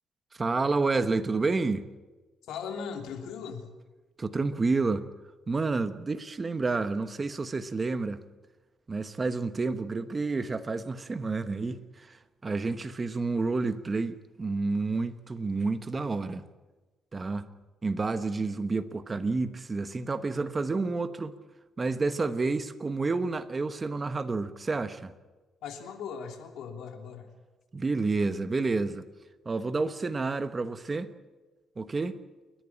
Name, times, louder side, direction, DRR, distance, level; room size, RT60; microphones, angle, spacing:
voice 1, 0.4-1.9 4.2-5.1 5.5-8.2 8.9-12.2 12.4-16.5 17.1-17.5 17.8-21.3 21.8-25.1 27.7-29.1 29.4-31.1 31.8-32.1, right 3 dB, 25° right, 1.1 m, -29 dB
voice 2, 2.4-3.7 25.6-27.3, left 6 dB, 85° left, 3.1 m, -38 dB
29.0 x 11.0 x 10.0 m
cardioid pair, 110°, 0 cm